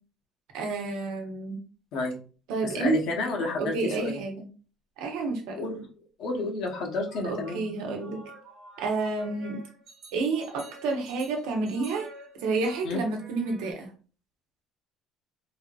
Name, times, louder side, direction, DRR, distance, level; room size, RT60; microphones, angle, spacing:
voice 1, 0.5-1.6 2.5-3.0 3.6-4.4 5.0-5.6 7.2-8.2 8.8-9.6 10.1-12.1 12.4-13.9, right 3 dB, 90° right, 3 dB, 0.9 m, -29 dB
voice 2, 2.6-4.1 5.6-5.8 6.2-7.7 12.8-13.0, left 3 dB, 55° left, 1 dB, 0.8 m, -30 dB
sound 1, 7.1-13.7, right 1 dB, 45° right, 1.0 m, -49 dB
3.3 x 2.7 x 2.3 m, 0.38 s
cardioid pair, 175°, 0 cm